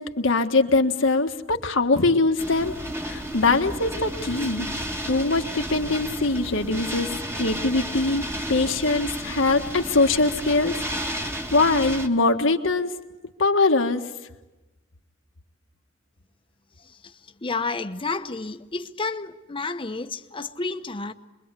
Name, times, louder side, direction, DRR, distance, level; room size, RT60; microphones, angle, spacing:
voice 1, 0.0-2.7 3.0-4.7 5.1-8.2 8.5-10.8 11.5-12.9 13.4-14.0, left 3 dB, 85° left, 1.6 m, -22 dB
sound 1, 2.4-12.1, equal, 15° right, 1.5 m, -32 dB
voice 2, 16.8-21.1, left 3 dB, 25° left, 0.9 m, -31 dB
27.0 x 22.0 x 8.3 m
head